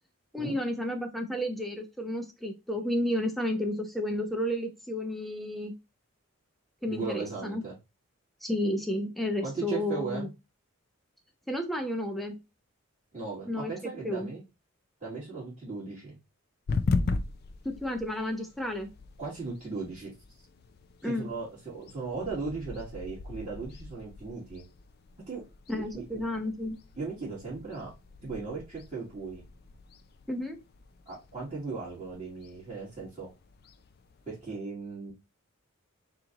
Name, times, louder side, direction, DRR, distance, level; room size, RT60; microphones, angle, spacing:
voice 1, 0.3-5.7 6.8-7.6 8.4-10.3 11.5-12.4 13.5-13.7 14.0-14.3 17.6-18.9 21.0-21.3 25.7-26.8 30.3-30.6, left 1 dB, ahead, 4 dB, 0.6 m, -32 dB
voice 2, 6.9-7.7 9.4-10.3 13.1-14.4 15.0-16.1 19.2-20.1 21.0-24.6 25.3-25.4 25.7-26.0 26.9-27.9 28.2-29.4 31.1-33.3 34.3-35.1, right 4 dB, 30° right, -10 dB, 2.3 m, -37 dB
sound 1, 16.7-34.5, left 3 dB, 45° left, 0.4 m, -39 dB
4.3 x 2.7 x 3.8 m, 0.24 s
head